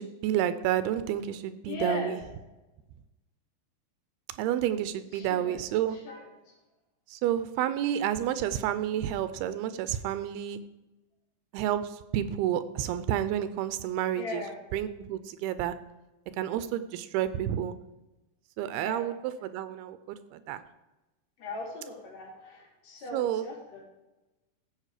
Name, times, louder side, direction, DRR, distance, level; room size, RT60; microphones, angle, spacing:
voice 1, 0.0-2.2 4.4-6.0 7.1-10.6 11.5-14.4 14.7-15.8 16.4-17.7 18.6-19.1 19.4-20.0 20.3-20.6 23.1-23.4, right 11 dB, 85° right, 12 dB, 2.6 m, -30 dB
voice 2, 1.6-2.1 5.1-5.6 5.9-6.5 14.1-14.6 18.7-19.1 21.4-23.8, left 3 dB, 45° left, -3 dB, 3.9 m, -39 dB
15.0 x 7.0 x 4.9 m, 1.1 s
omnidirectional pair, 4.5 m